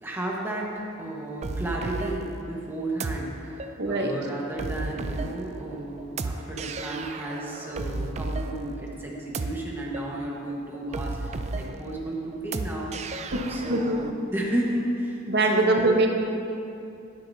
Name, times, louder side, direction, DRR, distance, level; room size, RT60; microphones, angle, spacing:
voice 1, 0.0-14.0 14.3-15.2 15.5-15.9, right 1 dB, 10° right, -3 dB, 1.4 m, -33 dB
sound 1, 1.4-14.1, right 3 dB, 35° right, 0.4 m, -34 dB
voice 2, 3.8-4.1 13.3-14.0 15.3-16.1, right 2 dB, 55° right, 2 dB, 1.0 m, -23 dB
19.5 x 6.6 x 2.8 m, 2.7 s
head